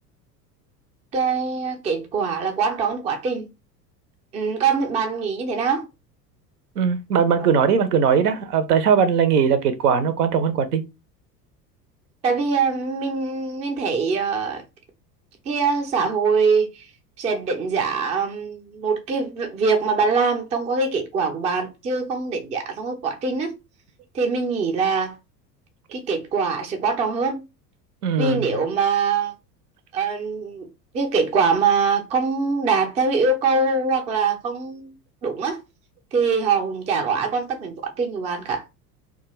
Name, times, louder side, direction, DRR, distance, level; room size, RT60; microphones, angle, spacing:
voice 1, 1.1-3.5 4.3-5.9 7.4-7.5 12.2-14.6 15.5-16.8 17.2-23.6 24.1-25.2 25.9-27.4 28.2-29.3 29.9-30.7 30.9-34.9 35.2-35.6 36.1-38.6, right 5 dB, 15° right, 0.4 m, -23 dB
voice 2, 6.8-10.8 28.0-28.5, right 6 dB, 70° right, 0.6 m, -19 dB
2.3 x 2.2 x 3.0 m
figure-of-eight pair, 75°, 49 cm